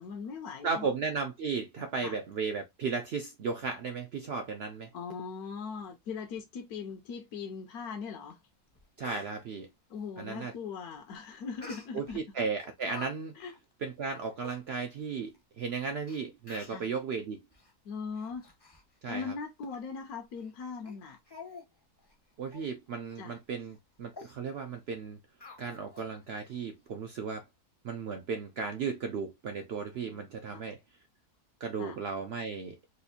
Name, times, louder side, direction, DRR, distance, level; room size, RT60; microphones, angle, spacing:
voice 1, 0.0-0.9 2.0-2.2 4.9-8.4 9.9-12.2 13.3-13.5 16.7-16.9 17.8-18.5 19.1-21.2 23.2-23.4 30.1-30.6 31.8-32.0, left 5 dB, 75° left, 1.1 m, -40 dB
voice 2, 0.6-4.9 9.0-9.7 10.2-10.5 11.9-13.3 13.8-17.4 19.0-19.3 22.4-25.2 25.6-27.4 27.8-30.8 31.6-32.8, right 5 dB, 80° right, 0.5 m, -35 dB
Speech, 8.3-8.4 8.7-9.3 11.6-12.2 12.6-13.1 13.4-13.6 14.1-14.2 14.4-14.6 15.3-15.4 16.1-16.2 16.5-16.9 17.5-17.7 18.2-18.8 19.1-19.3 19.7-19.8 20.4-20.5 20.9-21.0 21.3-21.7 22.0-22.1 22.5-22.7 23.1-23.2 23.6-23.8 24.1-24.3 25.4-26.1 26.5-26.6, left 4 dB, 30° left, 0.4 m, -48 dB
4.2 x 2.4 x 2.6 m
omnidirectional pair, 1.6 m